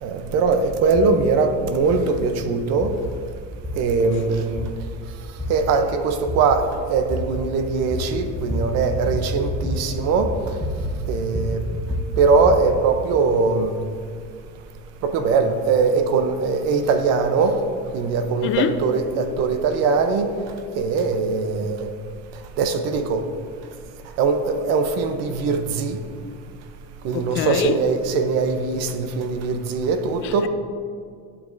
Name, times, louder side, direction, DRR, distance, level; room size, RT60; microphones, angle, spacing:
voice 1, 0.0-2.9 3.8-4.6 5.5-10.3 11.1-11.6 12.2-13.7 15.0-17.6 17.9-20.3 20.8-21.9 22.6-23.2 24.2-26.0 27.0-30.5, right 4 dB, 55° right, 8 dB, 0.7 m, -21 dB
sound 1, 0.9-1.1 1.9-2.0 2.8-2.9 3.6-3.7 4.6-4.7 5.4-5.5 6.3-6.4 7.1-7.2 7.9-8.0 8.3-8.6 8.9-9.2 9.4-9.7 10.0-10.9 11.2-12.6, left 1 dB, ahead, 1.0 m, -28 dB
voice 2, 27.1-27.7 30.2-30.5, left 9 dB, 40° left, 10 dB, 0.4 m, -24 dB
12.0 x 7.1 x 2.6 m, 2.3 s
cardioid pair, 175°, 31 cm